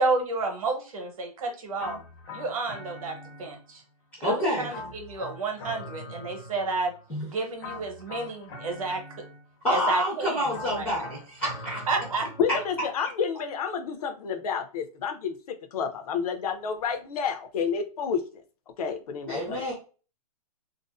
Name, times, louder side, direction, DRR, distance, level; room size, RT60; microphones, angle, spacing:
voice 1, 0.0-2.0 2.3-3.8 4.2-6.9 7.3-9.0 9.7-10.5 10.7-10.9 11.9-12.3, right 3 dB, 65° right, 4 dB, 0.8 m, -30 dB
sound 1, 1.8-3.9 4.7-7.1 7.6-9.7 10.5-12.9, left 2 dB, 45° left, 0.9 m, -43 dB
voice 2, 4.2-4.7 7.1-7.2 9.6-11.9 19.3-19.7, equal, 10° left, -8 dB, 0.6 m, -28 dB
voice 3, 12.4-18.2 18.8-19.7, left 6 dB, 70° left, 7 dB, 0.5 m, -30 dB
2.5 x 2.4 x 2.2 m, 0.36 s
hypercardioid pair, 175°, 20 cm